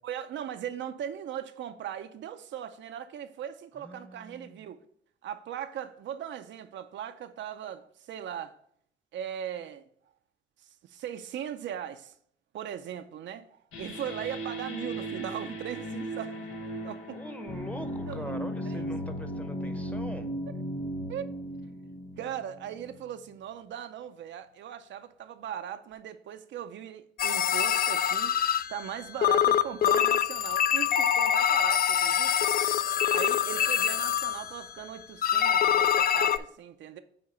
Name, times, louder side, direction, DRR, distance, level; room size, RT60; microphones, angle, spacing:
voice 1, 0.0-4.8 5.2-8.6 9.1-9.8 10.8-12.1 12.5-13.5 13.8-16.5 16.8-17.2 18.1-18.8 21.1-21.3 22.2-28.4 28.7-32.3 33.1-37.0, right 9 dB, 65° right, 0.5 m, -39 dB
voice 2, 3.8-4.6 17.1-20.3, equal, 5° left, 0.8 m, -42 dB
sound 1, 13.7-23.1, right 1 dB, 85° left, 1.2 m, -36 dB
sound 2, 27.2-29.0 29.2-34.8 35.2-36.4, left 9 dB, 50° left, 0.4 m, -25 dB
8.6 x 2.9 x 5.4 m
cardioid pair, 90°, 20 cm